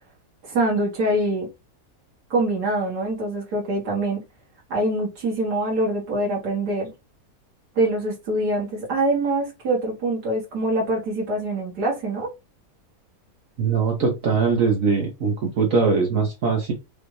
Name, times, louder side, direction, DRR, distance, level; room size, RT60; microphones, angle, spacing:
voice 1, 0.4-1.5 2.3-4.2 4.7-6.9 7.8-12.3, right 1 dB, 85° right, 2.1 m, -24 dB
voice 2, 13.6-16.7, right 5 dB, 60° right, 1.2 m, -21 dB
5.1 x 2.6 x 3.2 m
omnidirectional pair, 1.7 m